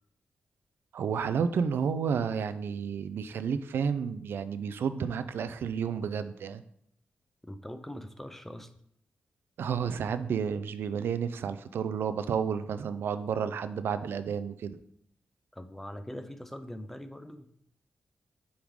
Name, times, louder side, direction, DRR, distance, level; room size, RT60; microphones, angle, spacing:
voice 1, 0.9-6.6 9.6-14.8, right 7 dB, 85° right, 12 dB, 0.4 m, -31 dB
voice 2, 7.4-8.7 15.5-17.5, left 1 dB, 5° left, 9 dB, 0.4 m, -42 dB
7.1 x 3.7 x 4.7 m, 0.68 s
wide cardioid pair, 140°, 4 cm